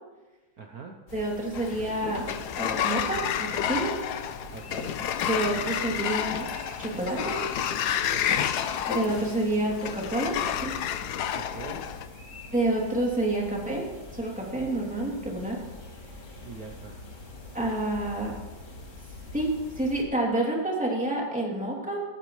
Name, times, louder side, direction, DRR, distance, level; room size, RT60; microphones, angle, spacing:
voice 1, 0.6-1.0 4.5-5.0 8.1-8.6 11.3-11.9 16.4-17.0, right 4 dB, 55° right, 2 dB, 1.3 m, -42 dB
sound 1, 1.1-20.0, left 2 dB, 40° left, 2.3 m, -45 dB
voice 2, 1.1-2.3 2.5-3.9 5.2-6.4 6.8-7.3 8.9-10.8 12.5-13.9 14.1-15.6 17.5-18.3 19.3-22.0, right 1 dB, 5° right, -3 dB, 2.8 m, -28 dB
Sliding door, 1.5-12.1, left 9 dB, 65° left, 1.1 m, -30 dB
17.5 x 16.0 x 3.2 m, 1.2 s
omnidirectional pair, 2.2 m